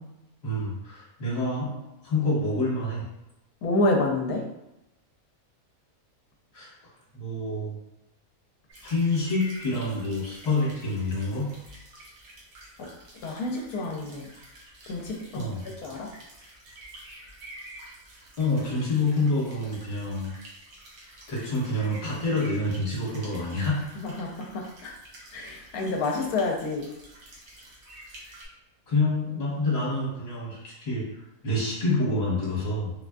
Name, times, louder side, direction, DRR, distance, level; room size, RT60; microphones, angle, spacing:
voice 1, 0.4-1.8 2.0-3.1 6.5-6.7 7.1-7.8 8.8-11.5 15.3-15.7 18.4-20.4 21.3-24.0 28.9-32.9, left 2 dB, 50° left, -6 dB, 1.3 m, -27 dB
voice 2, 3.6-4.5 12.8-12.9 13.2-14.3 14.9-15.5 15.8-16.1 24.0-24.9 25.3-26.9, left 2 dB, 80° left, 1 dB, 1.0 m, -28 dB
sound 1, 8.7-28.5, right 1 dB, 70° right, 1.2 m, -48 dB
3.7 x 2.4 x 2.2 m, 0.89 s
omnidirectional pair, 1.5 m